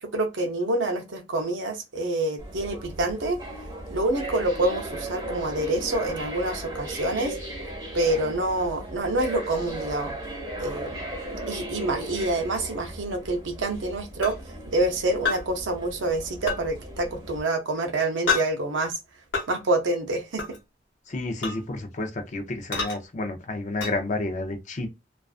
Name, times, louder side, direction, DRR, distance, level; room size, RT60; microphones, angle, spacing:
voice 1, 0.0-3.4 3.9-7.4 7.9-10.1 10.6-11.0 11.5-14.4 14.7-19.0 19.5-20.5, right 2 dB, 80° right, 0.6 m, -27 dB
sound 1, 2.4-17.4, right 1 dB, 25° right, 1.0 m, -37 dB
sound 2, 14.2-14.4 15.2-15.4 16.5-16.6 18.3-18.5 19.3-19.5 20.4-20.6 21.4-21.6 22.7-23.0 23.8-23.9, left 5 dB, 90° left, 0.8 m, -26 dB
voice 2, 21.1-24.9, left 2 dB, 40° left, 0.5 m, -30 dB
2.4 x 2.3 x 2.3 m
head